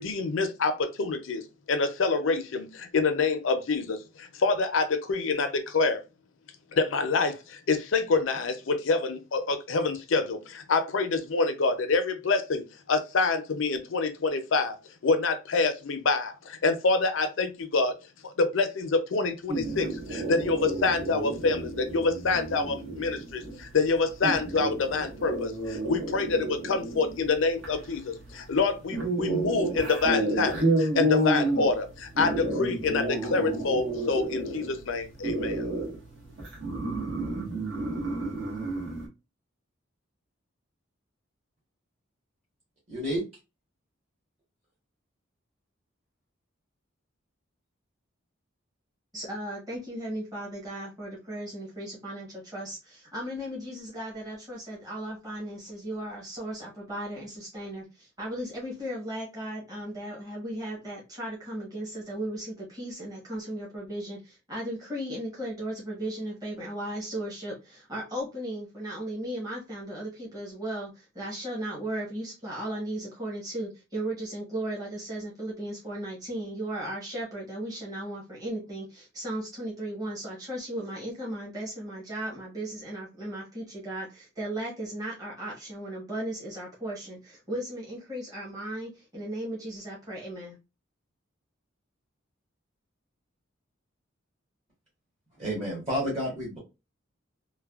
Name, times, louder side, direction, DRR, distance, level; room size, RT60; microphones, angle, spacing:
voice 1, 0.0-1.4 1.7-6.0 6.7-14.8 15.0-18.0 18.2-35.7, left 4 dB, 75° left, 0.5 m, -27 dB
sound 1, 19.5-39.1, right 1 dB, 70° right, 1.3 m, -31 dB
voice 2, 42.9-43.2 95.4-96.6, equal, 35° right, 1.2 m, -30 dB
voice 3, 49.1-90.6, right 1 dB, 20° right, 1.0 m, -36 dB
3.2 x 2.2 x 2.3 m
head